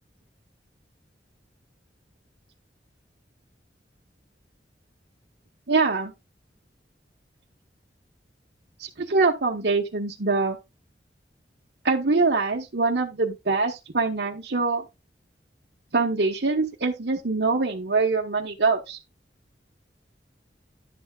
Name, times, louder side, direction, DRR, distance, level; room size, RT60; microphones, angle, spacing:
voice 1, 5.7-6.1 8.8-10.6 11.8-14.8 15.9-19.0, right 3 dB, 70° right, 1.2 m, -24 dB
11.5 x 8.3 x 2.4 m
head